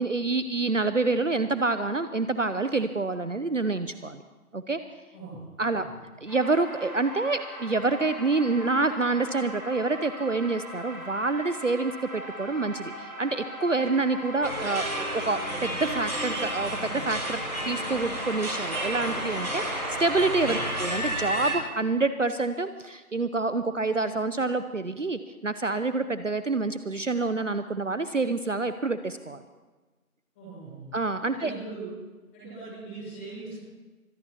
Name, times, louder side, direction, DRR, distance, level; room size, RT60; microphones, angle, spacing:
voice 1, 0.0-4.2 4.5-4.8 5.6-5.8 6.2-17.4 17.7-29.4 30.9-31.5, right 3 dB, 55° right, 11 dB, 0.8 m, -27 dB
sound 1, 6.3-20.8, equal, 30° right, 7.1 m, -40 dB
sound 2, 14.4-21.6, right 1 dB, 75° right, 4.5 m, -31 dB
voice 2, 30.3-30.9 31.3-31.9 32.3-33.5, right 3 dB, 10° left, -8 dB, 6.8 m, -40 dB
24.5 x 18.0 x 3.0 m, 1.2 s
figure-of-eight pair, 165°, 44 cm